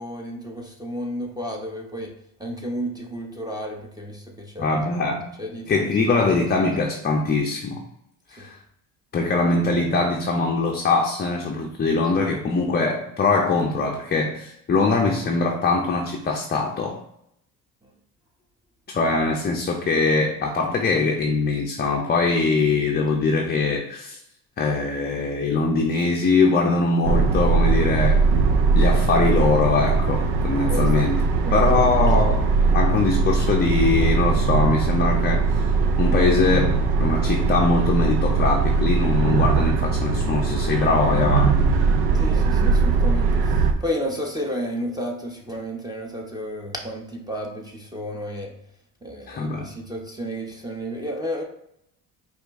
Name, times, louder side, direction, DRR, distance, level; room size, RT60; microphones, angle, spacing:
voice 1, 0.0-2.1 2.4-4.8 5.4-6.2 8.4-8.5 17.8-17.9 30.7-31.1 31.4-31.7 42.1-48.5 49.0-51.4, equal, 10° right, 0 dB, 0.8 m, -32 dB
voice 2, 4.6-5.3 5.7-7.8 8.3-8.6 9.1-17.0 18.9-24.2 24.6-28.3 28.8-31.2 31.5-35.4 36.0-36.7 37.0-41.6 49.3-49.7, left 3 dB, 25° left, 1 dB, 0.5 m, -22 dB
sound 1, 27.0-43.7, right 4 dB, 90° right, 0.7 m, -20 dB
4.9 x 2.5 x 3.5 m, 0.75 s
cardioid pair, 95°, 41 cm